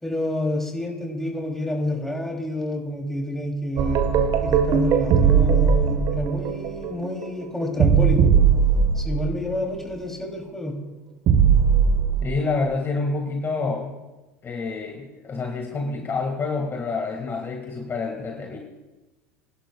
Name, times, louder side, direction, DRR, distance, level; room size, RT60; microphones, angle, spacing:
voice 1, 0.0-4.0 4.4-8.3 8.9-10.8, left 1 dB, 5° left, 1 dB, 2.9 m, -28 dB
sound 1, 3.8-9.6 11.3-12.3, right 7 dB, 50° right, 1.3 m, -19 dB
voice 2, 12.2-14.0 14.4-18.6, left 3 dB, 30° left, 1 dB, 1.9 m, -28 dB
23.0 x 11.5 x 2.3 m, 1.1 s
hypercardioid pair, 80°, 8 cm